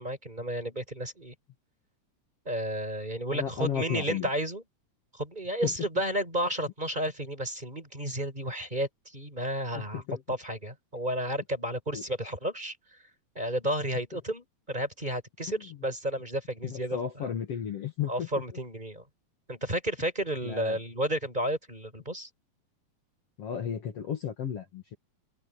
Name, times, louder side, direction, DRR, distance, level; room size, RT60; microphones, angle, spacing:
voice 1, 0.0-1.3 2.4-4.6 5.1-10.0 10.3-12.8 13.4-17.3 18.1-19.0 19.5-22.3, right 1 dB, 15° right, 5.6 m, -32 dB
voice 2, 3.3-4.3 5.6-5.7 9.7-10.2 11.9-12.0 16.6-18.3 20.4-20.8 23.4-25.0, left 8 dB, 55° left, 2.7 m, -33 dB
open air
omnidirectional pair, 3.5 m